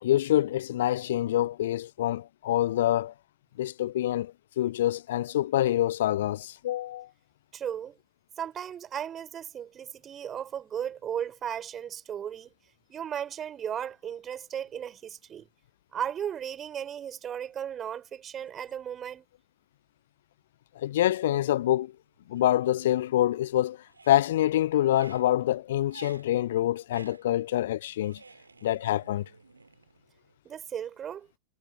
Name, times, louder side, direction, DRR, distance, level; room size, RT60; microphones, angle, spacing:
voice 1, 0.0-3.1 3.6-7.1 20.8-21.9 22.3-23.8 24.1-28.2 28.6-29.3, left 13 dB, 60° left, 0.3 m, -26 dB
voice 2, 7.5-8.0 8.4-12.5 12.9-15.5 15.9-19.3 30.4-31.3, right 9 dB, 25° right, 6.8 m, -35 dB
sound 1, 21.2-21.8 22.2-23.5 23.8-30.3, right 4 dB, 80° right, 4.1 m, -52 dB
figure-of-eight pair, 90°, 0 cm